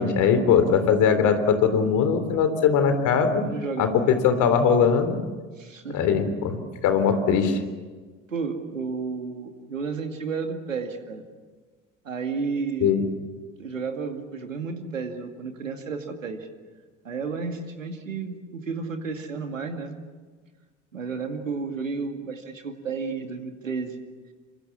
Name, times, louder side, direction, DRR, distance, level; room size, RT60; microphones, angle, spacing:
voice 1, 0.0-3.4 3.8-5.2 5.9-6.6 6.8-7.6 12.8-13.0, left 6 dB, 50° left, 8 dB, 3.7 m, -20 dB
voice 2, 3.4-4.2 5.6-6.1 8.3-11.2 12.0-12.9 13.6-16.5 17.0-20.0 20.9-24.0, right 4 dB, 80° right, 6 dB, 2.3 m, -32 dB
27.5 x 24.0 x 7.2 m, 1.4 s
figure-of-eight pair, 60°, 39 cm